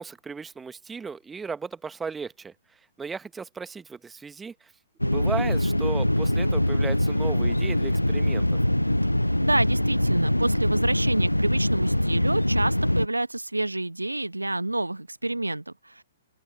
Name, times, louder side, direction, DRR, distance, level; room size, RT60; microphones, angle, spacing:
voice 1, 0.0-2.5 3.0-4.7 5.0-8.5, right 5 dB, 10° right, 1.4 m, -35 dB
sound 1, 5.0-13.1, left 1 dB, 90° left, 0.5 m, -23 dB
voice 2, 9.4-16.0, right 2 dB, 85° right, 1.1 m, -28 dB
open air
figure-of-eight pair, 120°, 0 cm